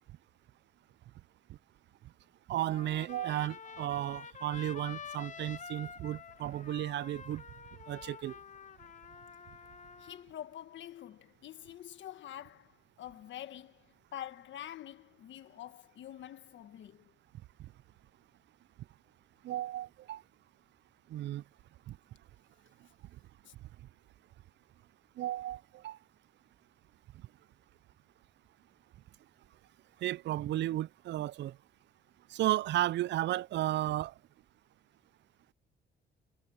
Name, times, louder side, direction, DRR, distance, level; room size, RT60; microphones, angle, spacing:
voice 1, 2.5-7.4 7.9-8.4 19.4-20.2 21.1-21.4 25.2-26.0 30.0-31.5 32.3-34.1, right 14 dB, 65° right, 0.4 m, -34 dB
Trumpet, 2.6-10.2, left 6 dB, 40° left, 1.0 m, -48 dB
sound 1, 4.6-10.2, right 12 dB, 80° right, 7.7 m, -68 dB
voice 2, 10.0-17.0 23.5-23.6, left 11 dB, 70° left, 1.5 m, -47 dB
cardioid pair, 90°, 20 cm